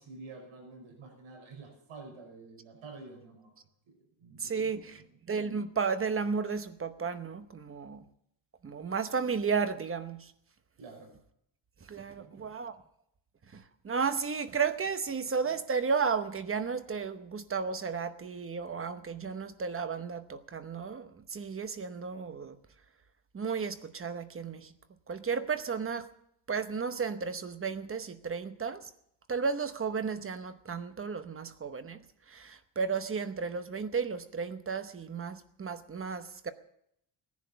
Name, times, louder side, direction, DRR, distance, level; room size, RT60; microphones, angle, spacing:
voice 1, 0.0-5.1 10.8-11.1 12.1-12.7, right 3 dB, 90° right, 2 dB, 5.6 m, -50 dB
voice 2, 4.4-5.0 5.3-8.0 8.6-10.3 11.9-12.8 13.5-22.6 23.3-24.7 25.1-26.1 26.5-28.9 29.3-32.0 32.3-36.5, right 5 dB, 30° right, 11 dB, 0.9 m, -33 dB
18.0 x 10.5 x 6.9 m, 0.73 s
wide cardioid pair, 170°, 47 cm